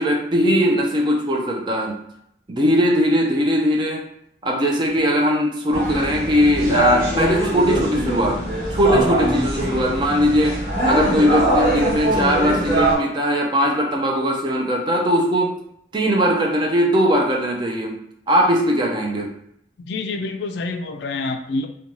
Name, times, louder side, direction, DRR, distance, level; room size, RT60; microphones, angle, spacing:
voice 1, 0.0-2.0 2.5-4.1 4.4-8.4 8.7-15.6 15.9-18.0 18.3-19.4, equal, 25° right, 1 dB, 0.4 m, -20 dB
sound 1, 5.7-12.9, right 1 dB, 45° right, 1.1 m, -22 dB
voice 2, 19.9-21.7, left 3 dB, 70° left, 6 dB, 0.3 m, -27 dB
2.6 x 2.2 x 3.0 m, 0.74 s
head